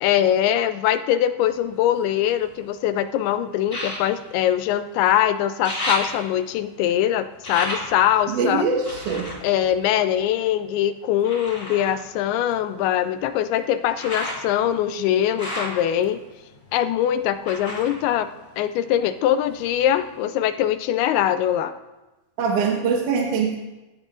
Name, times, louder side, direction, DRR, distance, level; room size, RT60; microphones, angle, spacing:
voice 1, 0.0-8.7 9.4-16.2 16.7-18.3 18.6-21.8, left 11 dB, 85° left, 11 dB, 2.5 m, -22 dB
sound 1, 1.5-2.8 3.6-5.2 5.4-10.6 11.2-19.1 19.4-20.2 20.7-20.8, left 1 dB, 20° left, 2.8 m, -34 dB
voice 2, 8.3-9.3 22.4-23.6, right 5 dB, 65° right, 0 dB, 2.4 m, -23 dB
19.5 x 10.5 x 2.5 m, 1.1 s
omnidirectional pair, 4.5 m